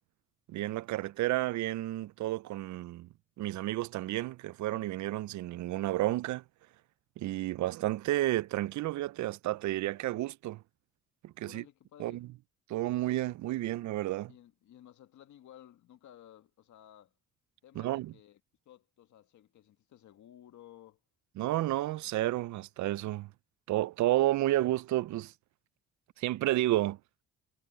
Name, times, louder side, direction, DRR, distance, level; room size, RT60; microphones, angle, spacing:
voice 1, 0.5-3.1 3.4-6.4 7.2-10.6 11.2-11.6 12.0-12.3 12.7-14.3 17.8-18.1 21.4-23.3 23.7-25.3 26.2-27.0, right 15 dB, 70° right, 0.5 m, -31 dB
voice 2, 11.4-12.3 14.3-17.1 17.6-18.4 18.7-21.0, left 11 dB, 70° left, 1.9 m, -56 dB
cardioid pair, 90°, 30 cm